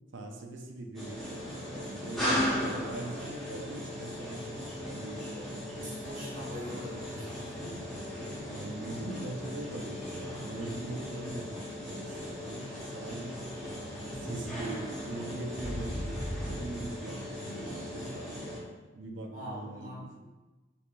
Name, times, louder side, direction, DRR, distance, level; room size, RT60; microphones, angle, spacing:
voice 1, 0.1-5.7 7.4-7.8 8.5-12.6 12.9-13.5 14.0-18.7 18.9-20.3, right 2 dB, 75° right, 3 dB, 0.5 m, -42 dB
sound 1, 0.9-18.6, equal, ahead, 0.9 m, -37 dB
voice 2, 5.8-7.7 19.3-20.0, equal, 45° right, -5 dB, 1.1 m, -42 dB
4.7 x 3.4 x 2.4 m, 1.2 s
head